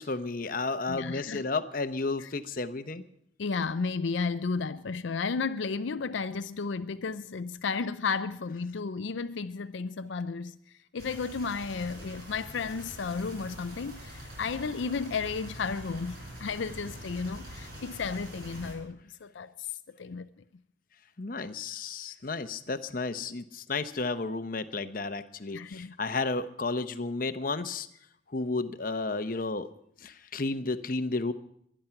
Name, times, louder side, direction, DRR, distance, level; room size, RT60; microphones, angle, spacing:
voice 1, 0.0-3.0 21.2-27.9 28.3-29.7 30.0-31.3, left 3 dB, 45° left, 0.8 m, -32 dB
voice 2, 0.9-1.5 2.2-2.3 3.4-10.6 10.9-19.7 20.0-20.3 25.5-25.9, left 4 dB, 70° left, 0.5 m, -33 dB
sound 1, 11.0-18.7, equal, 50° right, 6.2 m, -44 dB
23.0 x 10.0 x 5.8 m
head